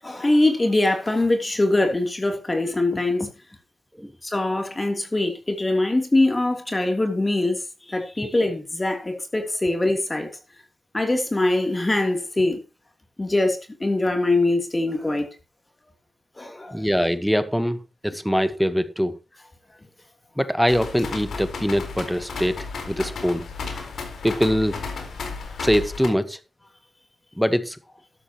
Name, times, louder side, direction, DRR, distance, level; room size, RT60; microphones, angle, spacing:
voice 1, 0.0-3.3 4.2-7.6 7.9-10.3 10.9-12.6 13.2-15.3 16.4-16.8 23.7-23.9, left 2 dB, 25° left, 3.1 m, -23 dB
voice 2, 16.7-17.8 18.0-19.2 20.4-23.5 24.2-24.8 25.6-26.4 27.4-27.8, equal, ahead, 1.3 m, -23 dB
Rain and gutter dripping, 20.7-26.1, left 4 dB, 80° left, 4.2 m, -33 dB
13.0 x 12.5 x 3.0 m
cardioid pair, 65°, 0 cm